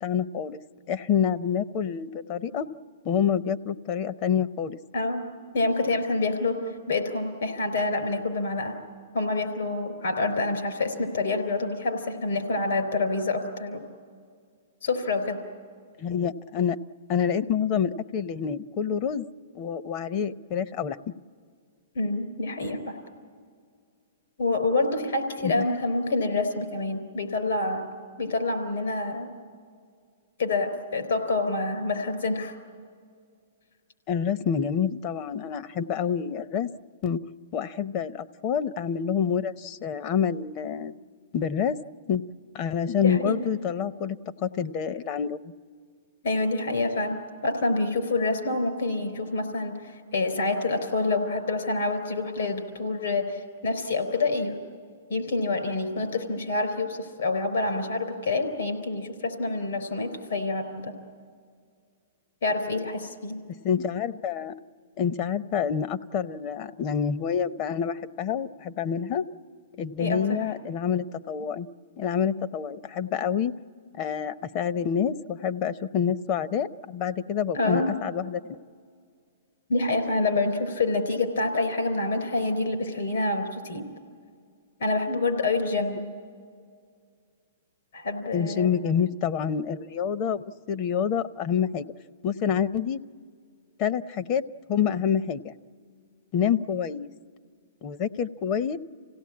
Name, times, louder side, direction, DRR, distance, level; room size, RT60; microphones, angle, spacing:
voice 1, 0.0-0.6 0.9-2.7 3.0-4.8 16.0-16.8 17.1-19.2 19.5-21.2 25.4-25.6 34.1-36.7 37.0-37.2 37.5-40.9 41.3-41.8 42.1-42.2 42.5-45.4 63.6-64.5 65.0-69.2 69.8-71.7 72.0-73.5 74.0-78.4 88.3-91.9 92.2-93.0 93.8-94.4 94.7-95.5 96.3-97.1 97.8-98.8, left 7 dB, 40° left, 13 dB, 0.7 m, -27 dB
voice 2, 4.9-5.3 5.5-6.6 6.9-8.8 9.1-13.8 14.8-15.4 22.0-23.0 24.4-27.8 28.2-29.3 30.4-32.5 43.0-43.4 46.2-47.2 47.4-54.6 55.1-60.9 62.4-63.4 70.0-70.5 77.5-77.9 79.7-83.9 84.8-86.1 87.9-88.7, left 3 dB, 75° left, 8 dB, 3.9 m, -27 dB
26.5 x 17.0 x 8.6 m, 2.1 s
hypercardioid pair, 130°, 0 cm